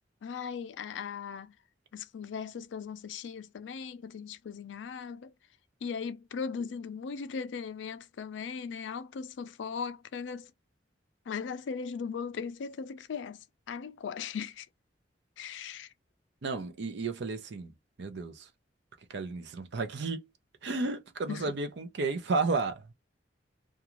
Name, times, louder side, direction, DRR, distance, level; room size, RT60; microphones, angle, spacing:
voice 1, 0.2-1.5 1.9-5.3 5.8-10.5 11.3-14.7 15.4-15.9 21.3-21.4, left 6 dB, 75° left, 0.4 m, -38 dB
voice 2, 16.4-17.7 18.0-18.5 19.1-20.2 20.6-22.9, right 3 dB, 65° right, 0.5 m, -32 dB
2.4 x 2.3 x 2.9 m
head